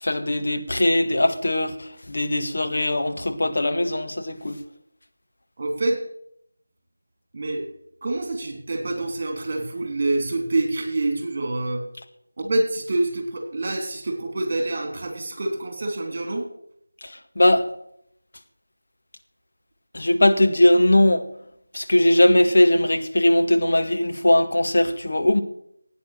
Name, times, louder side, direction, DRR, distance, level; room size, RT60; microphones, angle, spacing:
voice 1, 0.0-4.6 17.0-17.7 19.9-21.3 21.7-25.4, left 1 dB, 60° left, 1.9 m, -20 dB
voice 2, 5.6-6.0 7.3-7.7 8.0-11.8 12.4-16.5, right 2 dB, 35° right, 3.4 m, -26 dB
16.5 x 9.1 x 6.8 m
figure-of-eight pair, 170°, 0 cm